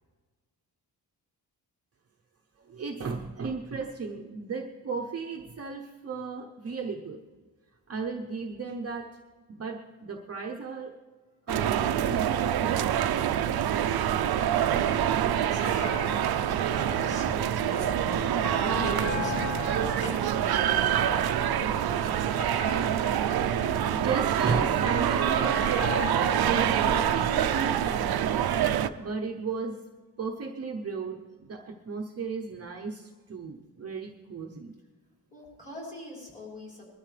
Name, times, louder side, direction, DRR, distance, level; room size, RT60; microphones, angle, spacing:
voice 1, 2.7-7.2 7.9-9.0 9.5-10.9 11.5-13.6 23.5-26.0 26.3-28.4 29.0-29.8 30.2-34.7, right 4 dB, 35° right, 1 dB, 0.8 m, -35 dB
sound 1, 11.5-28.9, right 10 dB, 65° right, 0.6 m, -26 dB
voice 2, 14.6-22.4 25.4-25.5 26.3-26.6 35.3-37.0, left 1 dB, 20° left, -4 dB, 5.6 m, -42 dB
sound 2, 14.7-26.7, left 1 dB, 75° left, 2.9 m, -37 dB
21.0 x 13.0 x 3.3 m, 1.4 s
wide cardioid pair, 155°, 40 cm